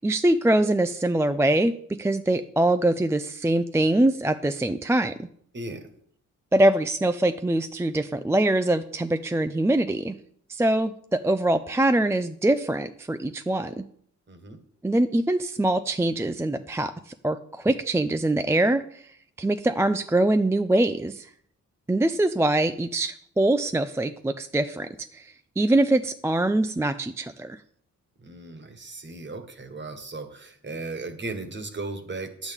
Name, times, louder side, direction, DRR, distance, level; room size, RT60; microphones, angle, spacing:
voice 1, 0.0-5.3 6.5-10.2 10.5-13.8 14.8-19.0 19.4-21.3 21.9-27.6, right 1 dB, 10° right, 8 dB, 0.4 m, -23 dB
voice 2, 5.5-5.9 14.3-14.6 28.2-32.5, right 3 dB, 35° right, 7 dB, 1.4 m, -36 dB
10.0 x 8.1 x 3.6 m, 0.63 s
cardioid pair, 85°, 31 cm